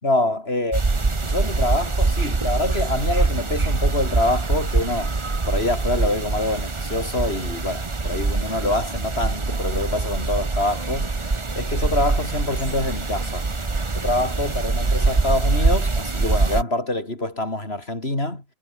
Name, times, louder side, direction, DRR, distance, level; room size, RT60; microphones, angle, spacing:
voice 1, 0.0-5.1 5.5-11.1 11.5-13.5 14.0-18.4, left 2 dB, 55° left, 6.1 m, -25 dB
sound 1, 0.7-16.6, right 3 dB, 25° right, 1.2 m, -24 dB
omnidirectional pair, 1.2 m